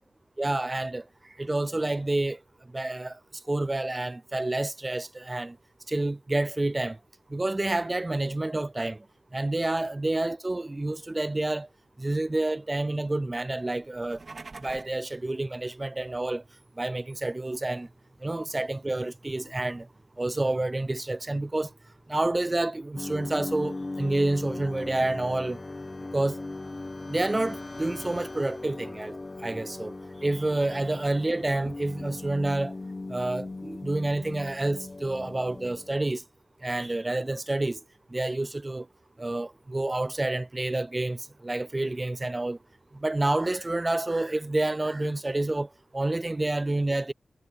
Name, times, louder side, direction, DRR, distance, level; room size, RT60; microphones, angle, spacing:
voice 1, 0.4-1.0 1.4-2.4 2.7-3.2 3.5-5.6 5.9-7.0 7.3-9.0 9.3-11.7 12.0-14.2 14.6-16.4 16.8-17.9 18.2-19.9 20.2-21.7 22.1-25.6 26.1-26.4 27.1-29.9 30.2-32.7 33.1-36.2 36.6-37.8 38.1-38.9 39.2-42.6 42.9-45.7 45.9-47.1, right 2 dB, 25° right, 0.3 m, -28 dB
sound 1, 13.9-15.0, right 3 dB, 50° right, 3.4 m, -44 dB
sound 2, 23.0-36.1, left 2 dB, 30° left, 1.0 m, -38 dB
wide cardioid pair, 85°, 0 cm